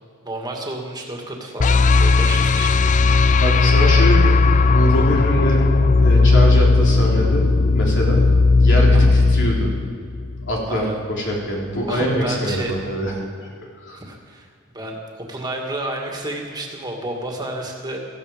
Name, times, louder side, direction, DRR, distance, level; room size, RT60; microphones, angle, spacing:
voice 1, 0.2-3.0 8.9-9.2 10.7-11.0 11.9-12.8 13.9-18.0, right 1 dB, 20° right, 0 dB, 2.3 m, -31 dB
sound 1, 1.6-10.7, left 3 dB, 35° left, 0.4 m, -16 dB
voice 2, 3.4-7.5 7.7-8.3 8.6-9.7 10.5-13.1 13.9-14.0, equal, 60° left, -2 dB, 3.7 m, -23 dB
17.0 x 15.0 x 5.3 m, 2.1 s
head